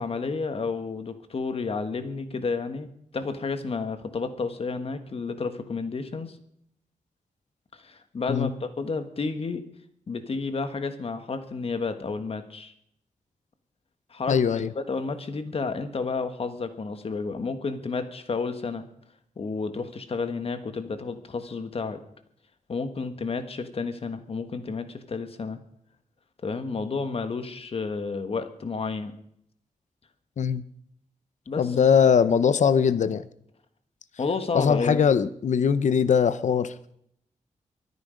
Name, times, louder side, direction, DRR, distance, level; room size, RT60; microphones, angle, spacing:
voice 1, 0.0-2.9 3.1-6.4 7.7-9.6 10.1-12.7 14.1-14.4 14.7-18.8 19.4-22.0 22.7-25.6 26.4-29.1 31.5-31.7 34.2-35.1, left 4 dB, 50° left, 9 dB, 1.5 m, -31 dB
voice 2, 14.3-14.7 30.4-30.6 31.6-33.3 34.5-36.7, left 7 dB, 65° left, 15 dB, 0.8 m, -21 dB
23.5 x 9.8 x 5.1 m, 0.72 s
wide cardioid pair, 135°, 13 cm